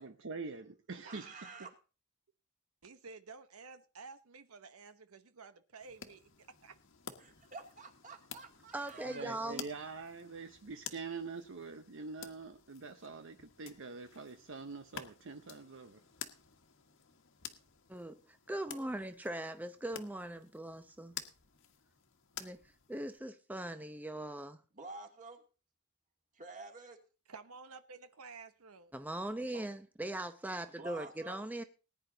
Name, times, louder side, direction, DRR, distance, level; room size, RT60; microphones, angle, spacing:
voice 1, 0.0-1.5 9.0-16.0, right 4 dB, 60° right, 8 dB, 0.8 m, -45 dB
voice 2, 1.0-1.7 7.2-9.2 18.6-18.9 24.7-25.4 26.3-27.0 29.5-29.7 30.8-31.4, right 3 dB, 35° right, 3 dB, 2.5 m, -50 dB
voice 3, 2.8-6.2 6.6-6.7 27.3-28.9, right 4 dB, 90° right, 11 dB, 1.0 m, -52 dB
sound 1, 5.8-23.2, left 8 dB, 65° left, 1.5 m, -51 dB
voice 4, 8.7-9.6 17.9-18.2 18.5-21.1 22.4-22.6 22.9-24.6 28.9-31.6, right 1 dB, 10° right, 9 dB, 0.7 m, -40 dB
19.5 x 9.9 x 3.9 m, 0.35 s
head